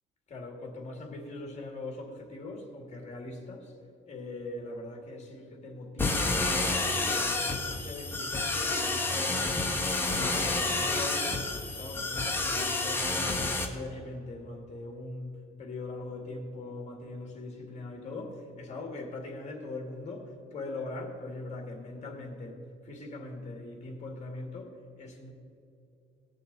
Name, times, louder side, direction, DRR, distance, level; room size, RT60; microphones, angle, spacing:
voice 1, 0.3-3.7 4.1-9.8 10.1-25.3, left 2 dB, 35° left, 2 dB, 2.0 m, -41 dB
sound 1, 6.0-13.6, left 2 dB, 10° left, 1.1 m, -29 dB
19.0 x 6.5 x 4.0 m, 2.6 s
cardioid pair, 155°, 20 cm